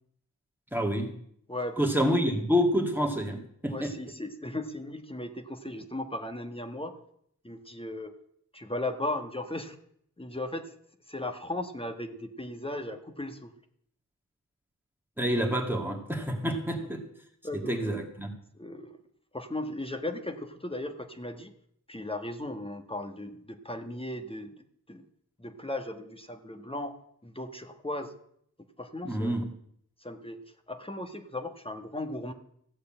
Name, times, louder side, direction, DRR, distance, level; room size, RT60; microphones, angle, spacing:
voice 1, 0.7-1.1 1.8-3.9 15.2-17.0 17.5-18.3 29.0-29.4, equal, 5° right, 1 dB, 2.0 m, -28 dB
voice 2, 1.5-1.9 3.7-6.9 7.4-8.1 8.5-9.8 10.2-10.7 11.1-13.5 17.4-18.0 18.5-19.0 19.3-21.5 21.9-24.6 24.9-25.0 25.4-27.0 27.2-28.1 28.8-29.4 30.0-32.3, left 1 dB, 15° left, 6 dB, 1.3 m, -37 dB
14.5 x 6.6 x 8.8 m, 0.69 s
wide cardioid pair, 85°, 32 cm